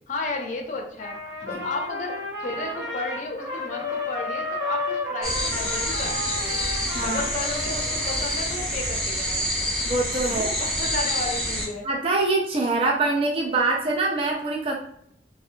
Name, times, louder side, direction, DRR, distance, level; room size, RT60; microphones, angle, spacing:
voice 1, 0.1-1.2 1.5-6.6 7.0-9.5 10.2-11.9, left 2 dB, 45° left, 2 dB, 0.5 m, -33 dB
Trumpet, 1.0-8.3, left 2 dB, 65° right, 0.7 m, -32 dB
sound 1, 5.2-11.7, equal, 5° left, 0.7 m, -27 dB
voice 2, 9.9-10.5 11.8-14.7, right 3 dB, 30° right, 0 dB, 0.3 m, -24 dB
2.6 x 2.1 x 2.6 m, 0.71 s
head